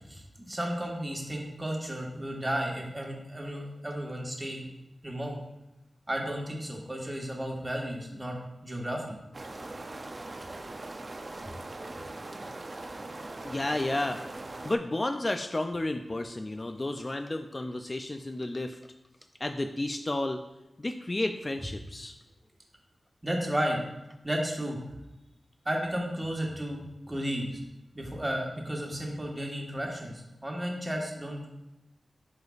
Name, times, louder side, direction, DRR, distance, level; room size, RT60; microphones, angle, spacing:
voice 1, 0.1-4.6 5.0-5.4 6.1-8.4 8.6-9.1 23.2-23.8 24.2-24.8 25.6-26.8 27.0-27.6 27.9-31.6, equal, 20° right, -1 dB, 1.4 m, -33 dB
sound 1, 9.3-14.8, right 2 dB, 40° right, 0.5 m, -41 dB
voice 2, 13.4-14.2 14.6-18.8 19.4-20.4 20.8-22.2, left 2 dB, 30° left, 6 dB, 0.4 m, -32 dB
7.9 x 5.0 x 2.4 m, 0.98 s
wide cardioid pair, 70°, 0 cm